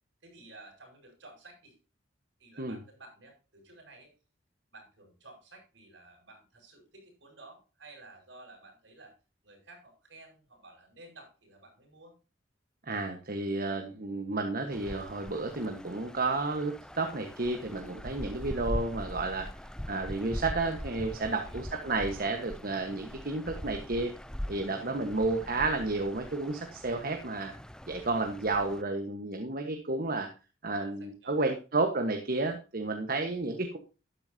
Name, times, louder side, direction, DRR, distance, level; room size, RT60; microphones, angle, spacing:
voice 1, 0.2-1.8 2.4-4.1 4.7-9.1 9.4-12.2 21.2-21.6 30.7-31.6, right 2 dB, 70° right, 1 dB, 7.4 m, -53 dB
voice 2, 12.9-19.5 19.9-24.1 24.5-27.5 27.9-30.3 30.6-33.8, right 3 dB, 50° right, 4 dB, 1.4 m, -31 dB
sound 1, 14.7-28.8, equal, 5° left, 0.4 m, -42 dB
13.0 x 11.0 x 2.8 m, 0.33 s
head